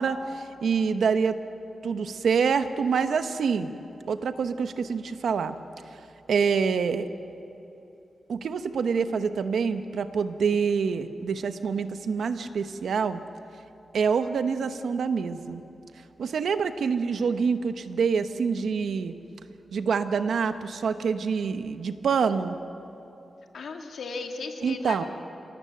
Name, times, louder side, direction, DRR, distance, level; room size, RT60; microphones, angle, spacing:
voice 1, 0.0-1.4 1.8-3.7 4.1-5.6 6.3-7.1 8.3-13.2 13.9-15.6 16.2-19.1 19.7-22.6 24.6-25.0, right 6 dB, 80° right, 9 dB, 1.1 m, -26 dB
voice 2, 23.5-25.1, left 4 dB, 80° left, 3 dB, 2.3 m, -35 dB
27.5 x 19.0 x 7.8 m, 2.8 s
wide cardioid pair, 110°, 0 cm